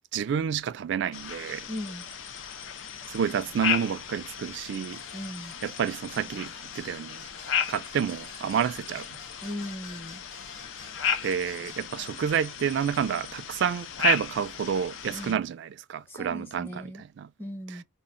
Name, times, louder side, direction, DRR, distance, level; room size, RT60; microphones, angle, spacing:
voice 1, 0.1-1.7 3.1-5.0 5.6-7.2 7.7-9.1 11.2-17.3, right 8 dB, 65° right, 0.3 m, -29 dB
sound 1, 1.1-15.3, left 8 dB, 75° left, 0.4 m, -35 dB
voice 2, 1.7-2.0 5.1-5.5 9.4-10.2 15.1-15.4 16.1-17.0 17.4-17.8, left 1 dB, 10° left, 0.9 m, -38 dB
sound 2, 4.9-11.8, left 3 dB, 50° left, 0.9 m, -50 dB
2.1 x 2.1 x 3.7 m
head